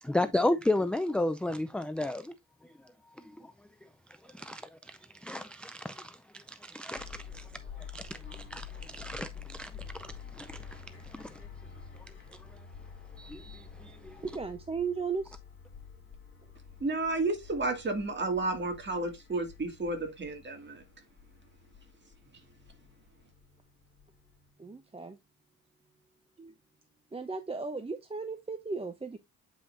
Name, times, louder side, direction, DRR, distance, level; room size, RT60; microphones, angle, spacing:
voice 1, 0.0-2.4 2.6-12.7 13.1-14.3, left 1 dB, 5° left, 0.4 m, -35 dB
sound 1, 7.0-24.5, left 6 dB, 35° left, 2.5 m, -49 dB
voice 2, 14.2-15.4 24.6-25.2 26.4-26.5 27.1-29.2, right 5 dB, 15° right, 0.7 m, -36 dB
voice 3, 16.8-20.8, right 2 dB, 35° right, 2.2 m, -32 dB
8.8 x 5.4 x 2.6 m
cardioid pair, 100°, 34 cm